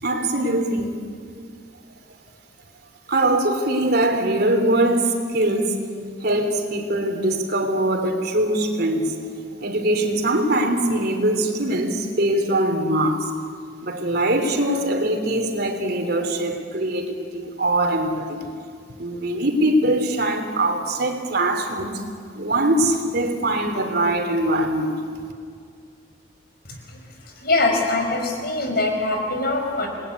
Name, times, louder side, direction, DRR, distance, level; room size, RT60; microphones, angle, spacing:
voice 1, 0.0-1.0 3.1-5.8 6.2-9.2 9.6-13.3 13.8-18.4 19.0-22.0 22.3-25.0, right 1 dB, 55° right, 5 dB, 3.2 m, -22 dB
voice 2, 26.7-27.0 27.4-29.9, left 2 dB, 55° left, 2 dB, 5.7 m, -23 dB
29.0 x 20.5 x 9.7 m, 2.2 s
head